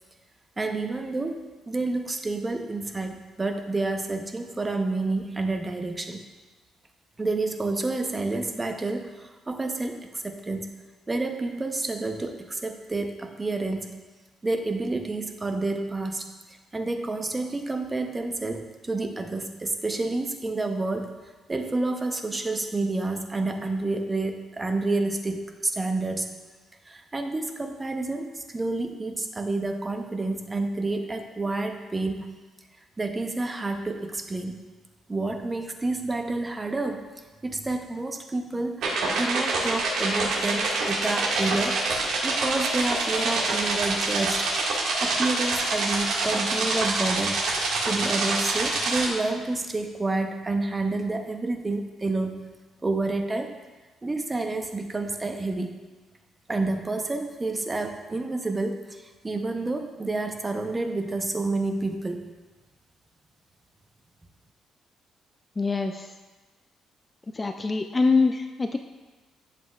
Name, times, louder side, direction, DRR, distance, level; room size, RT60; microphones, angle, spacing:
voice 1, 0.6-6.2 7.2-10.7 11.1-14.0 14.4-16.3 16.7-21.2 21.5-26.3 26.9-32.4 33.0-34.5 35.1-37.1 37.4-38.9 39.2-41.8 42.2-44.5 45.0-47.4 47.8-52.5 52.8-53.6 54.0-55.8 56.5-62.2, right 2 dB, 20° right, 5 dB, 0.7 m, -29 dB
sound 1, 38.8-49.1, right 3 dB, 80° right, 1.8 m, -26 dB
voice 2, 65.6-66.1 67.3-68.8, left 4 dB, 20° left, 6 dB, 0.3 m, -24 dB
11.0 x 7.6 x 2.4 m, 1.3 s
cardioid pair, 120°, 0 cm